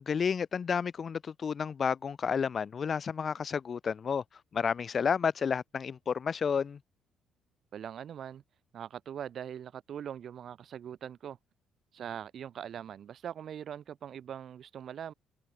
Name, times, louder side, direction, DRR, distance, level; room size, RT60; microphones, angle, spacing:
voice 1, 0.0-4.2 4.5-6.8, left 6 dB, 40° left, 0.9 m, -31 dB
voice 2, 7.7-8.4 8.7-11.4 11.9-15.1, right 9 dB, 55° right, 2.6 m, -41 dB
cardioid pair, 100°, 0 cm